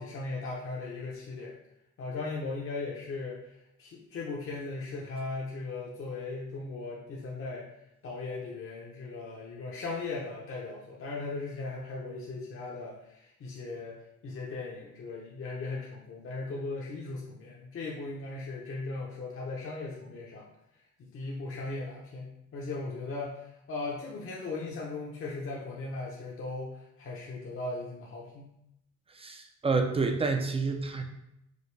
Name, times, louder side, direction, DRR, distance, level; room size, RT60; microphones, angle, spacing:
voice 1, 0.0-1.5 2.0-7.7 8.0-20.5 21.1-28.5, left 3 dB, 45° left, -4 dB, 0.8 m, -38 dB
voice 2, 29.1-31.0, right 4 dB, 20° right, 5 dB, 0.5 m, -29 dB
5.1 x 2.2 x 3.3 m, 0.82 s
cardioid pair, 90°, 30 cm